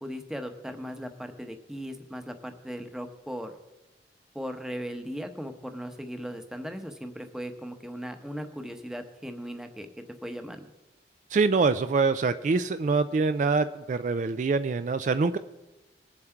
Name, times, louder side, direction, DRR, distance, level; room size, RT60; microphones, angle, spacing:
voice 1, 0.0-3.5 4.3-10.7, equal, 5° right, 6 dB, 0.8 m, -38 dB
voice 2, 11.3-15.4, right 4 dB, 45° right, 11 dB, 0.3 m, -25 dB
20.0 x 7.3 x 4.5 m, 1.0 s
head